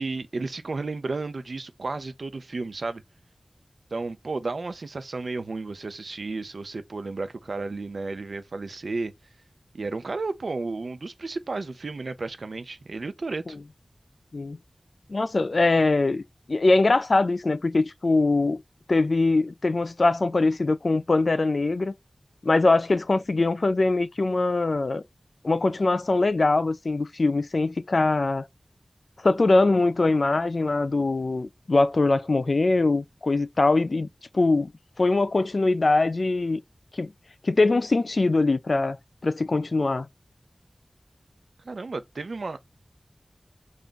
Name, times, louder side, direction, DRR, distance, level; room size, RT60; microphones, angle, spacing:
voice 1, 0.0-3.0 3.9-9.1 9.7-13.6 41.6-42.6, right 3 dB, 85° right, 0.5 m, -33 dB
voice 2, 15.1-16.2 16.5-18.6 18.9-21.9 22.4-25.0 25.4-28.5 29.2-34.1 34.3-34.7 35.0-36.6 36.9-37.1 37.4-39.0 39.2-40.1, left 3 dB, 65° left, 0.3 m, -22 dB
3.5 x 2.5 x 3.8 m
wide cardioid pair, 70°, 0 cm